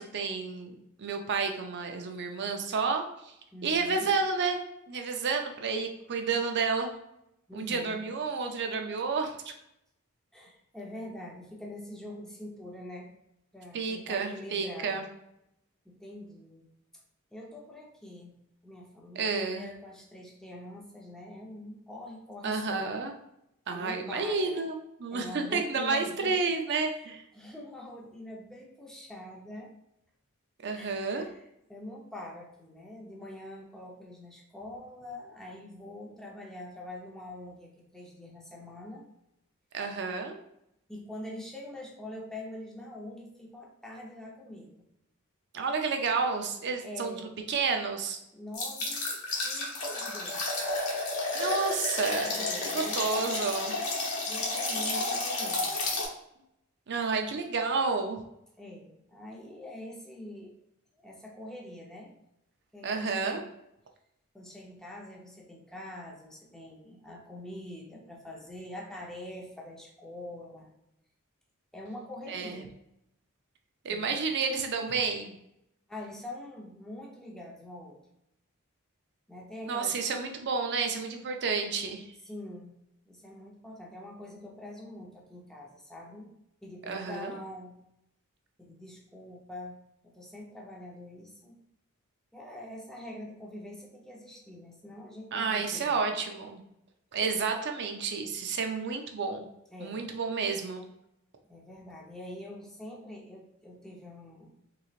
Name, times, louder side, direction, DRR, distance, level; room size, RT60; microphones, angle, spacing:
voice 1, 0.0-3.3 3.6-4.6 4.9-6.9 7.5-9.5 13.7-15.0 19.1-19.7 22.4-23.1 23.7-27.2 30.6-31.3 39.7-40.4 45.5-48.2 51.3-53.7 56.9-58.2 62.8-63.4 72.3-72.6 73.8-75.3 79.6-82.1 86.9-87.3 95.3-96.6 97.1-99.5 99.8-100.8, right 4 dB, 55° right, 4 dB, 0.5 m, -30 dB
voice 2, 3.5-4.1 7.5-8.1 10.3-13.1 13.5-15.1 15.8-16.7 17.3-18.3 18.6-22.9 23.7-24.7 25.1-26.6 27.3-29.7 30.8-39.1 40.9-44.9 46.8-47.4 48.3-50.5 52.3-53.6 54.3-55.8 58.6-60.5 61.0-62.1 62.7-63.5 64.3-70.7 71.7-72.7 73.9-74.2 75.9-78.0 79.3-80.0 82.3-82.7 83.1-86.3 86.6-87.8 88.6-89.8 90.0-91.6 92.3-96.1 99.7-100.2 101.5-104.5, left 1 dB, 5° left, -2 dB, 0.7 m, -44 dB
sound 1, 48.5-56.1, left 2 dB, 75° left, 1.1 m, -31 dB
3.8 x 3.1 x 2.4 m, 0.81 s
head